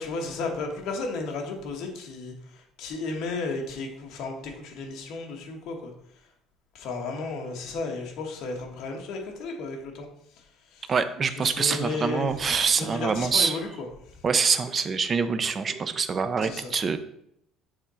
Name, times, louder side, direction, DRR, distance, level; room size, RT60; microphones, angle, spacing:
voice 1, 0.0-5.9 6.7-10.1 10.4-10.9 11.4-12.3 12.7-14.2 16.4-16.7, left 3 dB, 55° left, 2 dB, 1.2 m, -34 dB
voice 2, 10.9-13.5 14.2-17.0, right 5 dB, 25° right, 11 dB, 0.4 m, -25 dB
6.7 x 3.6 x 4.2 m, 0.74 s
cardioid pair, 165°, 0 cm